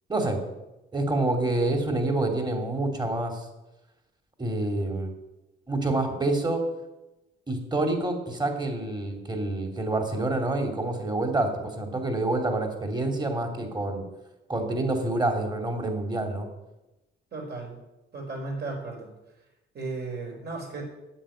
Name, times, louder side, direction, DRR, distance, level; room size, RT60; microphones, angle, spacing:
voice 1, 0.1-0.4 0.9-3.5 4.4-5.1 5.7-6.6 7.5-14.0 14.5-16.5, right 2 dB, 20° right, 4 dB, 2.8 m, -27 dB
voice 2, 17.3-17.8 18.1-19.1 19.7-20.8, right 3 dB, 50° right, 0 dB, 5.3 m, -35 dB
9.9 x 7.8 x 9.1 m, 0.98 s
cardioid pair, 100°, 21 cm